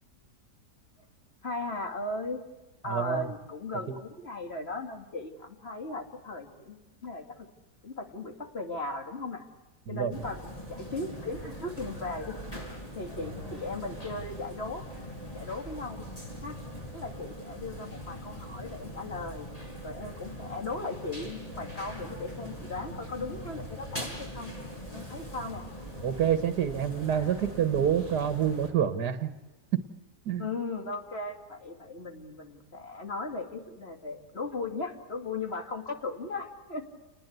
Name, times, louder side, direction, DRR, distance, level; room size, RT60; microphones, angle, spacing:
voice 1, 1.4-2.4 2.8-7.2 7.8-9.4 9.9-12.3 12.9-14.8 15.3-16.0 16.4-16.6 16.9-19.5 19.8-24.6 24.9-25.6 30.4-36.8, left 3 dB, 40° left, 4 dB, 2.8 m, -37 dB
voice 2, 2.8-3.3 3.9-4.0 9.9-10.1 26.0-29.3 30.3-30.5, right 8 dB, 75° right, 9 dB, 1.9 m, -27 dB
sound 1, 10.1-28.7, equal, 20° left, 5.7 m, -41 dB
29.5 x 20.0 x 8.1 m, 1.1 s
omnidirectional pair, 1.7 m